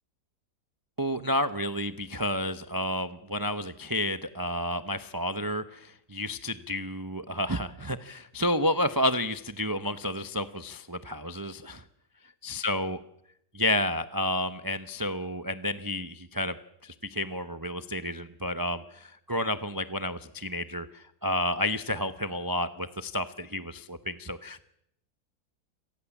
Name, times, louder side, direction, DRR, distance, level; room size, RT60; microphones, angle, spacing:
voice 1, 1.0-11.8 12.4-13.0 13.5-16.5 16.8-24.6, left 1 dB, 25° right, 11 dB, 0.4 m, -31 dB
27.5 x 19.0 x 7.2 m, 0.77 s
omnidirectional pair, 1.8 m